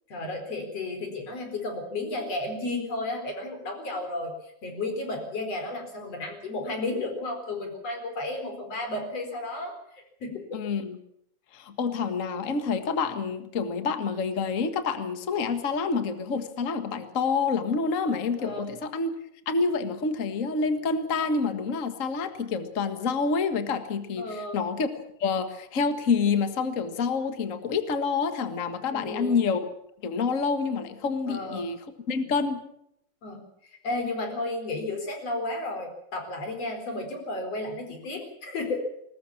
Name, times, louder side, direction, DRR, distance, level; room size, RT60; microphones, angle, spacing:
voice 1, 0.1-10.6 18.4-18.7 24.2-24.6 28.9-29.4 31.3-31.7 33.2-38.8, left 2 dB, 45° left, 5 dB, 5.3 m, -33 dB
voice 2, 10.5-11.0 11.5-19.1 19.4-24.9 25.2-29.7 30.0-31.8 32.1-32.6, left 5 dB, 65° left, 9 dB, 0.7 m, -27 dB
21.0 x 20.0 x 7.2 m, 0.75 s
omnidirectional pair, 4.1 m